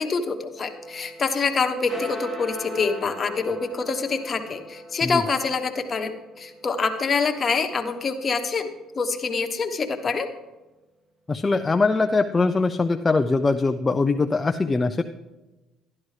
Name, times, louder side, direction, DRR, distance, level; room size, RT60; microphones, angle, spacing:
voice 1, 0.0-8.7 8.9-10.3, left 4 dB, 40° left, 6 dB, 1.1 m, -26 dB
sound 1, 0.6-9.1, equal, 15° right, 1.6 m, -41 dB
voice 2, 11.3-15.0, left 3 dB, 25° left, 7 dB, 0.4 m, -22 dB
12.5 x 11.0 x 3.3 m, 1.1 s
supercardioid pair, 80°, 0 cm